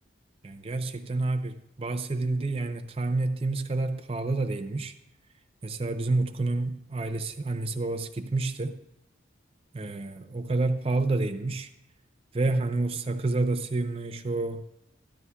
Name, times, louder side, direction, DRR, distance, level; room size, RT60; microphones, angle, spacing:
voice 1, 0.4-4.9 5.6-8.8 9.7-11.7 12.3-14.6, right 2 dB, 30° right, 0.5 m, -29 dB
13.5 x 11.0 x 2.3 m
head